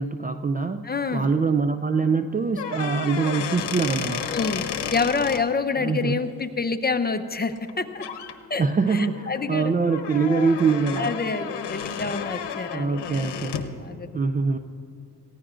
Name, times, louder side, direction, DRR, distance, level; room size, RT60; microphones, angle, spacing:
voice 1, 0.0-0.8 1.1-4.3 5.8-6.2 8.6-11.1 12.7-13.5 14.1-14.6, right 4 dB, 20° right, 9 dB, 0.4 m, -24 dB
voice 2, 0.8-1.3 4.3-8.2 8.5-9.7 10.3-10.5 11.0-14.2, left 4 dB, 20° left, 8 dB, 0.8 m, -28 dB
sound 1, 2.5-5.4 7.6-7.7 8.0-8.3 8.8-13.7, left 8 dB, 70° left, 1.0 m, -32 dB
19.0 x 15.5 x 2.5 m, 2.5 s
cardioid pair, 65°, 44 cm